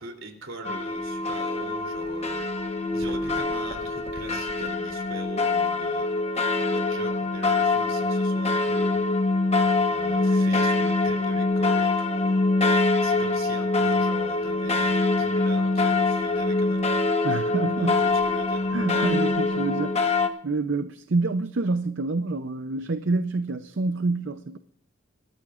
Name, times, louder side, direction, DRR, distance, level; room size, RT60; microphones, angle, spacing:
voice 1, 0.0-6.1 6.6-9.4 9.9-12.6 13.0-17.3 17.8-18.7, right 2 dB, 75° right, 3.1 m, -42 dB
sound 1, 0.6-20.3, left 3 dB, 30° left, 1.0 m, -24 dB
voice 2, 17.2-18.1 18.7-24.6, right 3 dB, 60° right, 0.6 m, -27 dB
25.5 x 13.5 x 2.4 m
head